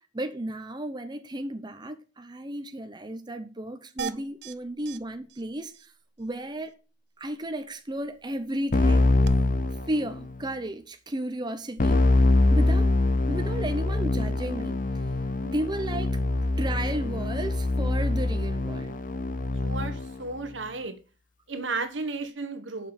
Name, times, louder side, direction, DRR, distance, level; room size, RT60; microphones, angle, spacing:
voice 1, 0.1-5.9 6.2-6.7 7.2-9.1 9.9-12.0 12.5-12.9 13.3-14.8 15.4-16.2 16.6-19.0, right 1 dB, 25° right, 0.8 m, -33 dB
sound 1, 4.0-4.5 4.9-5.0 5.3-5.4 5.7-5.9 9.2-9.3, right 6 dB, 65° right, 0.7 m, -35 dB
Keyboard (musical), 8.7-10.4 11.8-20.2, left 2 dB, 45° left, 0.7 m, -24 dB
voice 2, 19.6-21.0 21.5-22.9, right 3 dB, 80° right, 1.3 m, -33 dB
7.5 x 5.5 x 7.1 m
head